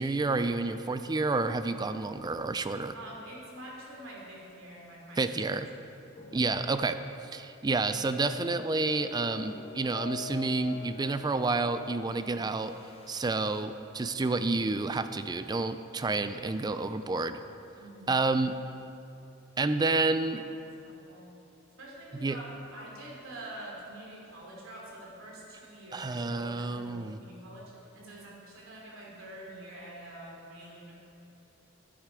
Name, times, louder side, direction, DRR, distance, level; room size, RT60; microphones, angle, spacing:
voice 1, 0.0-2.9 5.2-5.7 6.3-7.0 7.3-12.7 13.1-17.4 18.1-18.6 19.6-20.4 22.2-22.4 25.9-27.2, right 3 dB, 20° right, 11 dB, 0.4 m, -29 dB
voice 2, 2.9-5.3 6.0-6.1 17.7-18.1 20.3-20.4 20.8-21.3 21.8-30.9, right 1 dB, 85° right, -3 dB, 3.0 m, -46 dB
sound 1, 6.1-6.9 7.2-7.5 8.2-13.6, left 6 dB, 30° left, 0.8 m, -45 dB
11.0 x 10.0 x 4.7 m, 2.8 s
head